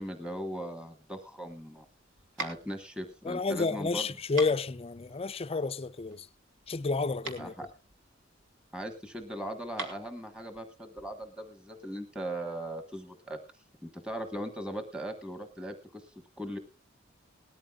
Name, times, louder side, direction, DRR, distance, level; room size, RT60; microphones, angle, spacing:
voice 1, 0.0-1.8 2.4-4.1 7.4-7.7 8.7-13.4 13.8-16.6, right 1 dB, 5° right, 1.3 m, -39 dB
sound 1, 1.6-11.3, right 3 dB, 75° right, 3.2 m, -44 dB
voice 2, 3.2-6.3 6.7-7.5, left 4 dB, 30° left, 0.5 m, -30 dB
19.5 x 14.0 x 2.4 m
head